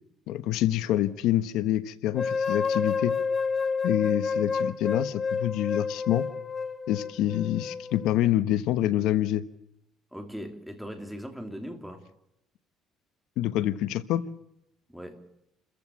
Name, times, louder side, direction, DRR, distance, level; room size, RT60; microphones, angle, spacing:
voice 1, 0.3-3.2 3.8-6.3 6.9-9.5 13.4-14.2, left 13 dB, 75° left, 1.2 m, -26 dB
sound 1, 2.1-8.2, left 5 dB, 30° left, 1.2 m, -29 dB
voice 2, 10.1-12.1 14.9-15.2, equal, ahead, 3.1 m, -39 dB
29.0 x 15.0 x 8.4 m
cardioid pair, 150°, 0 cm